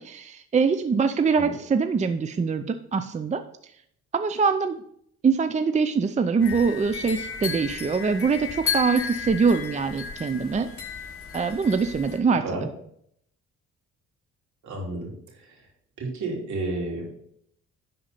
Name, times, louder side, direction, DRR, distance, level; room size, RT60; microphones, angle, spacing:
voice 1, 0.0-3.4 4.1-4.8 5.2-10.7 11.3-12.4, right 5 dB, 25° right, 9 dB, 0.5 m, -23 dB
sound 1, 6.4-12.2, left 6 dB, 45° left, 3.1 m, -34 dB
voice 2, 14.6-15.1 16.0-17.2, right 2 dB, 70° right, -1 dB, 3.2 m, -31 dB
10.5 x 4.3 x 5.6 m, 0.69 s
cardioid pair, 90°, 30 cm